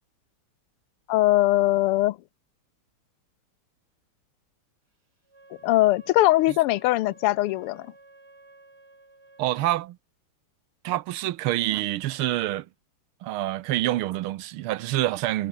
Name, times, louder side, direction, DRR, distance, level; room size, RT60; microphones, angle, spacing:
voice 1, 1.1-2.2 5.6-7.9, left 17 dB, 85° left, 1.6 m, -21 dB
Wind instrument woodwind instrument, 5.2-9.7, right 2 dB, 45° right, 6.7 m, -53 dB
voice 2, 9.4-10.0 10.8-12.7 13.2-15.5, right 14 dB, 80° right, 1.6 m, -26 dB
omnidirectional pair, 2.4 m